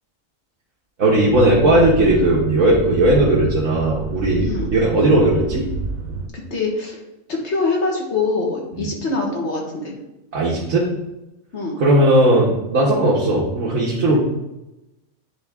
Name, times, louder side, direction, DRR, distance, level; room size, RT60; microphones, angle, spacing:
voice 1, 1.0-4.4 4.7-5.6 8.8-8.9 10.3-10.9 11.8-14.2, right 1 dB, 70° right, -7 dB, 1.6 m, -17 dB
sound 1, 1.1-6.3, right 3 dB, 90° right, 1.4 m, -28 dB
voice 2, 6.3-7.0 7.3-9.9 11.5-11.8, left 3 dB, 55° left, -1 dB, 1.6 m, -24 dB
10.0 x 3.6 x 3.5 m, 0.96 s
omnidirectional pair, 1.4 m